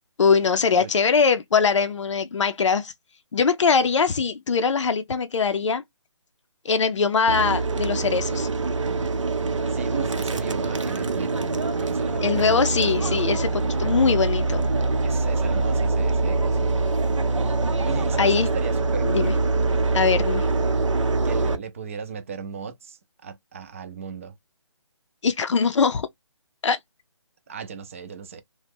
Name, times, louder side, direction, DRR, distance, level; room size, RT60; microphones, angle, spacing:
voice 1, 0.2-2.9 3.3-5.8 6.6-8.5 12.2-14.6 18.2-18.5 19.0-19.3 19.9-20.4 25.2-26.1 26.6-26.8, left 5 dB, 75° left, 0.5 m, -22 dB
sound 1, 7.3-21.6, right 3 dB, 85° right, 0.6 m, -24 dB
voice 2, 9.7-13.0 15.0-16.7 17.8-19.4 21.2-24.3 27.5-28.4, right 6 dB, 25° right, 0.4 m, -36 dB
2.9 x 2.1 x 3.3 m
figure-of-eight pair, 155°, 16 cm